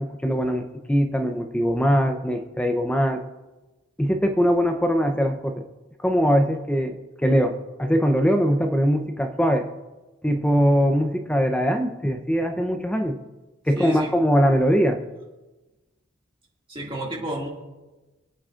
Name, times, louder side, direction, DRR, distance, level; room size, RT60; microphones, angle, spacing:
voice 1, 0.0-3.2 4.0-5.6 6.0-9.7 10.2-13.2 13.7-15.0, equal, 5° left, 5 dB, 0.7 m, -21 dB
voice 2, 13.7-14.1 16.7-17.5, right 1 dB, 25° right, -2 dB, 2.2 m, -31 dB
26.0 x 8.8 x 2.5 m, 1.1 s
head